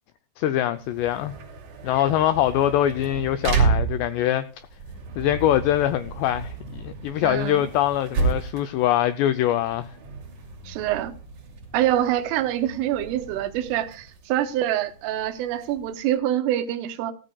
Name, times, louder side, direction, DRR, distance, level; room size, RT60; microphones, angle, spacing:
voice 1, 0.4-1.4 1.8-4.5 5.2-9.9, left 12 dB, 90° left, 2.4 m, -23 dB
sound 1, 0.8-16.1, right 4 dB, 45° right, 3.5 m, -31 dB
voice 2, 7.2-7.7 10.7-11.1 11.7-17.1, right 12 dB, 85° right, 3.5 m, -25 dB
16.5 x 14.0 x 2.3 m
omnidirectional pair, 5.7 m